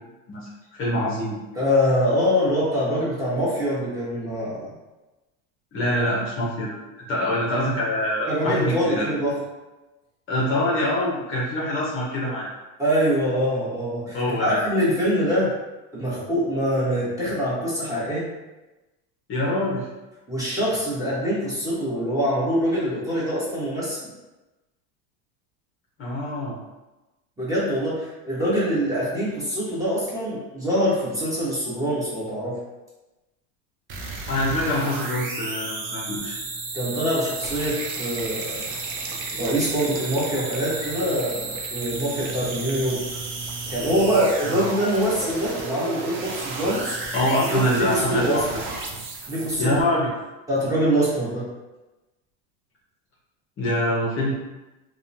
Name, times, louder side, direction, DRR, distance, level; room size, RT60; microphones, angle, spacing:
voice 1, 0.3-1.4 5.7-6.7 7.1-9.1 10.3-12.5 14.1-14.6 19.3-19.9 26.0-26.6 34.2-36.4 44.4-44.6 47.1-48.4 49.6-50.1 53.6-54.3, left 1 dB, 30° left, -6 dB, 0.7 m, -25 dB
voice 2, 1.5-4.7 8.3-9.4 12.8-15.5 15.9-18.3 20.3-24.0 27.4-32.6 36.7-38.8 39.4-43.0 43.7-47.0 47.5-48.4 49.3-49.8 50.5-51.5, equal, 10° right, -9 dB, 1.1 m, -24 dB
sound 1, 33.9-49.8, right 3 dB, 30° right, 0.5 m, -33 dB
sound 2, 37.4-48.7, right 4 dB, 75° right, 0.6 m, -42 dB
2.9 x 2.2 x 2.6 m, 1.1 s
supercardioid pair, 120°, 40 cm